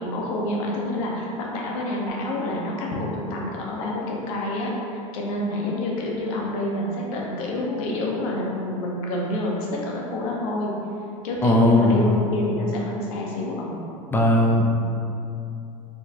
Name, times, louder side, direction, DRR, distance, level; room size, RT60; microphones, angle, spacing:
voice 1, 0.0-10.7 11.2-13.8, left 1 dB, 70° left, -2 dB, 0.8 m, -28 dB
voice 2, 11.4-12.0 14.1-14.7, left 2 dB, 10° left, -1 dB, 0.5 m, -17 dB
4.3 x 2.2 x 2.8 m, 2.7 s
hypercardioid pair, 95°, 18 cm